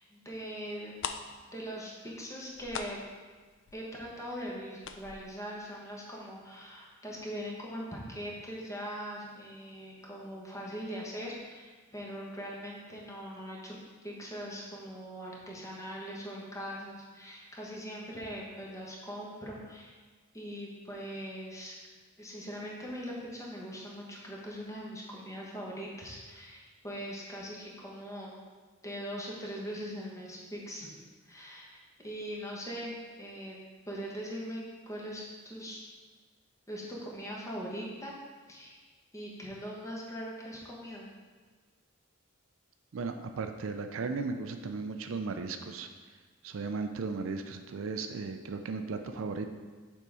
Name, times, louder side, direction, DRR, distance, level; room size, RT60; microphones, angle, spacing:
voice 1, 0.1-1.0 1.5-3.0 3.7-13.8 14.0-19.9 20.3-21.8 22.2-28.3 28.8-31.0 31.2-32.9 33.2-33.6 33.9-35.8 36.7-38.2 38.5-38.8 39.1-41.1, equal, 15° left, -4 dB, 1.1 m, -41 dB
sound 1, 0.7-0.8 1.0-6.5 6.8-6.9 7.3-7.6 7.9-8.0, left 6 dB, 60° left, 0.4 m, -43 dB
voice 2, 42.9-45.9 46.4-49.5, right 4 dB, 75° right, 6 dB, 0.4 m, -36 dB
6.8 x 3.6 x 4.8 m, 1.4 s
head